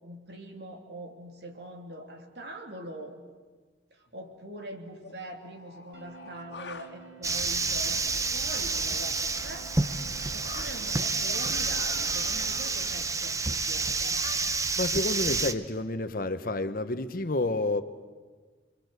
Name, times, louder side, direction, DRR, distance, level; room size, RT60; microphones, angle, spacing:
voice 1, 0.0-3.1 3.9-9.7 10.3-14.2, right 1 dB, 65° right, 3 dB, 3.2 m, -43 dB
sound 1, 4.1-4.2 5.0-6.9 8.0-10.7 11.2-13.1 14.0-15.3, left 4 dB, 70° left, 1.8 m, -47 dB
sound 2, 5.9-12.8, right 5 dB, 90° right, 3.0 m, -50 dB
sound 3, 7.2-15.5, right 4 dB, 20° right, 0.9 m, -29 dB
voice 2, 14.8-17.8, left 2 dB, 55° left, 10 dB, 1.1 m, -29 dB
30.0 x 22.5 x 8.2 m, 1.4 s
head